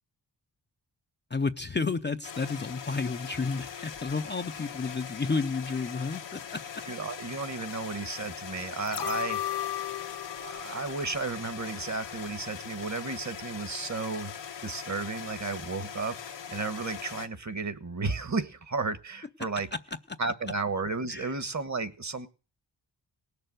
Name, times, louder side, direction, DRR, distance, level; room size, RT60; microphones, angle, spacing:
voice 1, 1.3-6.6 20.1-20.2 21.1-21.3, left 4 dB, 25° left, 0.6 m, -31 dB
sound 1, 2.2-17.3, left 8 dB, 85° left, 1.4 m, -41 dB
voice 2, 6.9-9.4 10.4-14.3 14.6-19.7 20.2-22.3, right 4 dB, 40° right, 1.4 m, -33 dB
sound 2, 8.8-12.0 12.3-12.4, left 12 dB, 70° left, 0.6 m, -36 dB
18.5 x 6.8 x 7.8 m
wide cardioid pair, 90°, 42 cm